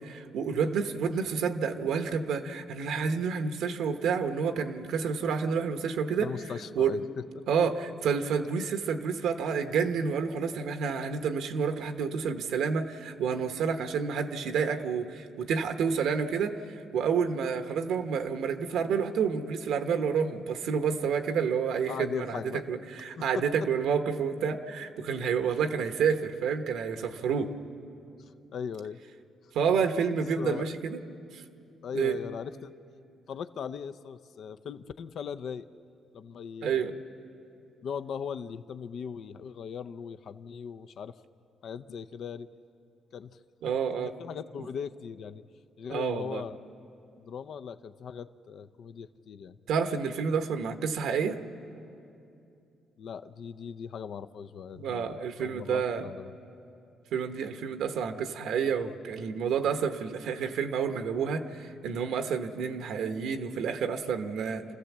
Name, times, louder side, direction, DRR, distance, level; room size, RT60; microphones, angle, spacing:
voice 1, 0.0-6.3 6.8-6.9 7.5-22.4 22.7-27.5 29.5-31.0 31.3-31.4 31.9-32.2 36.6-36.9 43.6-44.1 45.9-46.4 49.7-51.4 54.8-56.1 57.1-64.6, right 6 dB, 80° right, 7 dB, 1.1 m, -29 dB
voice 2, 6.2-7.5 21.9-22.6 23.2-23.7 28.5-29.0 30.4-30.7 31.8-32.7 33.3-35.7 36.1-36.8 37.8-41.2 41.6-42.5 43.1-43.4 44.0-45.4 45.8-46.6 47.2-49.6 53.0-56.3, left 7 dB, 65° left, 11 dB, 0.6 m, -39 dB
27.5 x 15.0 x 7.3 m, 2.6 s
cardioid pair, 90°, 0 cm